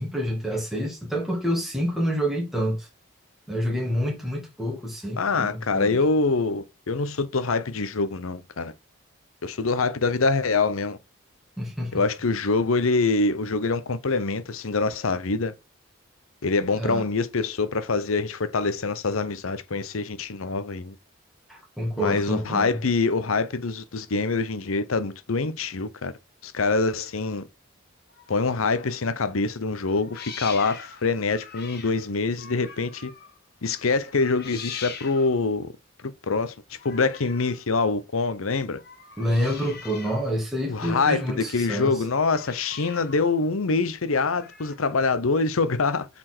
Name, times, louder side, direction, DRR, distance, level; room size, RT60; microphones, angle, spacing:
voice 1, 0.0-2.9 3.5-6.0 11.6-12.0 16.7-17.1 21.5-22.8 39.2-42.0, equal, ahead, 2.1 m, -28 dB
voice 2, 5.2-8.7 9.4-11.0 11.9-15.5 16.4-20.9 22.0-26.1 26.4-27.4 28.3-33.1 33.6-35.7 36.2-38.8 40.7-41.2 41.5-46.1, left 3 dB, 85° left, 0.8 m, -25 dB
sound 1, 28.1-28.9 29.9-33.4 33.7-35.5 36.7-37.7 38.7-40.3 40.6-41.9 42.2-43.3 44.3-44.9, left 6 dB, 50° left, 1.4 m, -43 dB
7.6 x 4.4 x 4.4 m
head